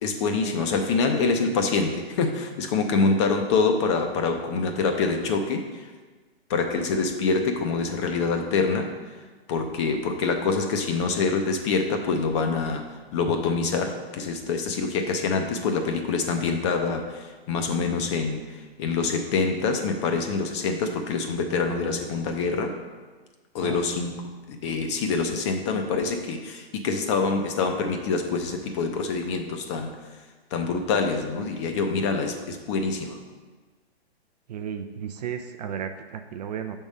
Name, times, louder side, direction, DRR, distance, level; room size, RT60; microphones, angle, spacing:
voice 1, 0.0-5.9 6.5-8.9 9.5-12.8 13.1-22.7 23.5-24.1 24.5-29.9 30.5-33.2, left 4 dB, 30° left, 5 dB, 0.5 m, -25 dB
voice 2, 34.5-36.8, right 8 dB, 40° right, 7 dB, 0.4 m, -34 dB
6.1 x 3.6 x 5.3 m, 1.4 s
hypercardioid pair, 135°, 32 cm